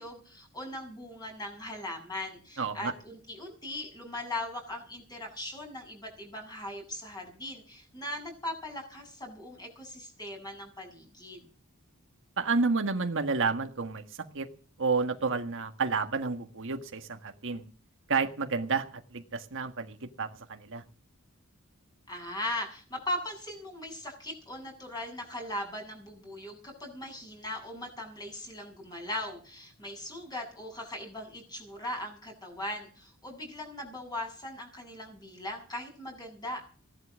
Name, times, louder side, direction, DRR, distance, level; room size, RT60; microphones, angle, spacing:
voice 1, 0.0-11.5 22.1-36.6, left 1 dB, 20° left, 2 dB, 7.6 m, -39 dB
voice 2, 2.6-2.9 12.4-14.0 14.3-14.5 14.8-17.6 18.1-18.9 19.1-20.8, right 4 dB, 65° right, 6 dB, 1.6 m, -30 dB
17.5 x 11.5 x 6.3 m, 0.39 s
head